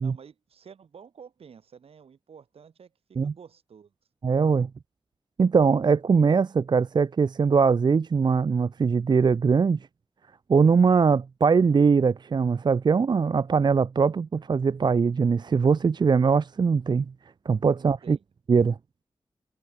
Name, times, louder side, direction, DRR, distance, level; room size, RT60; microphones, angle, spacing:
voice 1, 0.0-3.9 18.0-18.2, right 6 dB, 90° right, 5.9 m, -50 dB
voice 2, 4.2-4.7 5.4-9.8 10.5-17.1 17.5-18.2 18.5-18.8, right 5 dB, 50° right, 0.6 m, -21 dB
wide cardioid pair, 90°, 10 cm